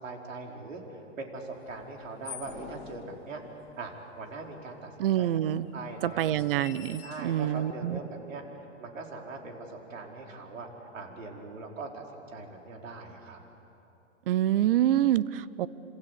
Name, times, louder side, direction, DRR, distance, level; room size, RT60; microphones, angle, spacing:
voice 1, 0.0-3.4 3.8-6.6 7.0-8.4 8.8-10.7 10.9-13.4, right 3 dB, 85° right, 1 dB, 5.0 m, -41 dB
sound 1, 1.7-3.8 4.6-4.7 4.8-4.9 5.6-7.7, left 9 dB, 30° left, 2.4 m, -47 dB
voice 2, 5.0-5.7 6.0-8.0 14.3-15.7, right 12 dB, 45° right, 18 dB, 0.8 m, -26 dB
27.0 x 26.0 x 8.5 m, 3.0 s
hypercardioid pair, 150°, 38 cm